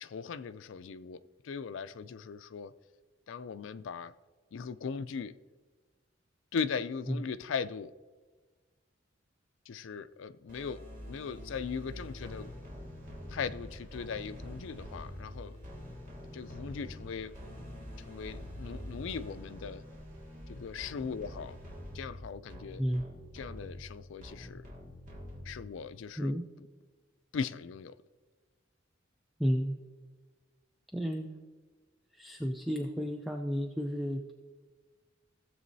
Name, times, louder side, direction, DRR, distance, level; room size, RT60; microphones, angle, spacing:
voice 1, 0.0-2.7 3.3-4.1 4.5-5.3 6.5-7.9 9.7-12.5 13.3-15.6 16.3-17.3 18.0-19.8 20.5-21.6 21.9-22.8 23.3-24.6 25.4-26.3 27.3-28.0, left 6 dB, 75° left, 0.4 m, -39 dB
sound 1, 10.5-25.9, left 1 dB, 45° right, 2.0 m, -46 dB
voice 2, 22.8-23.1 26.2-26.5 29.4-29.8 30.9-31.3 32.1-34.3, equal, ahead, 0.4 m, -32 dB
15.5 x 7.4 x 2.7 m
head